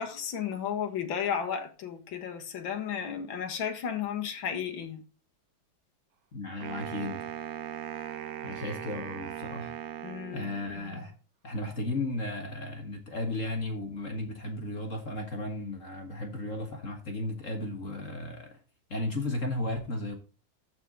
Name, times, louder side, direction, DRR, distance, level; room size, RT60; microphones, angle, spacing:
voice 1, 0.0-5.0 10.0-10.5 10.8-11.0, left 8 dB, 75° left, 2.2 m, -33 dB
voice 2, 6.3-7.3 7.9-9.7 10.3-11.1 11.4-18.6 18.9-20.2, left 2 dB, 40° left, 1.7 m, -35 dB
Wind instrument woodwind instrument, 6.6-10.8, right 10 dB, 60° right, 1.0 m, -39 dB
14.0 x 4.9 x 3.9 m
omnidirectional pair, 2.2 m